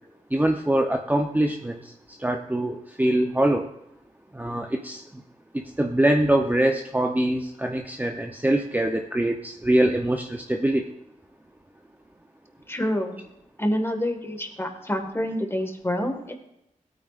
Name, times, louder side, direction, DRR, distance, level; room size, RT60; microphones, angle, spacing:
voice 1, 0.3-1.9 2.2-3.7 4.3-5.2 5.5-10.9, right 1 dB, 10° right, 3 dB, 0.8 m, -23 dB
voice 2, 12.7-13.2 13.6-16.3, equal, 15° left, 4 dB, 1.8 m, -27 dB
16.5 x 9.2 x 2.5 m, 0.83 s
cardioid pair, 60°, 14 cm